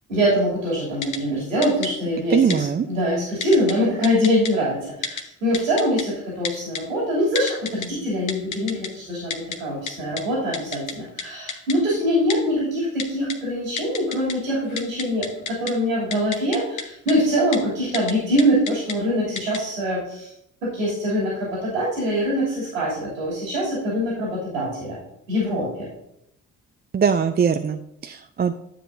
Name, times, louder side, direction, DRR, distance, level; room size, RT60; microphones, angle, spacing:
voice 1, 0.1-20.3 20.6-25.0 25.3-25.9, equal, 85° right, -6 dB, 2.8 m, -23 dB
Typing, 1.0-1.2 1.6-1.9 2.5-2.6 3.4-3.7 4.0-4.5 5.0-5.2 5.5-6.0 6.4-6.8 7.4-7.9 8.3-8.9 9.3-9.6 9.9-10.0 10.2-10.3 10.5-10.9 11.2-11.3 11.5-11.8 12.3-12.4 13.0-13.4 13.8-14.3 14.6-15.7 16.1-16.8 17.1-17.2 17.5-17.6 17.9-18.1 18.4-18.9 19.4-19.6, left 6 dB, 50° left, 1.2 m, -29 dB
voice 2, 2.3-2.9 26.9-28.5, right 7 dB, 25° right, 8 dB, 0.5 m, -21 dB
11.0 x 7.5 x 2.6 m, 0.77 s
hypercardioid pair, 45°, 39 cm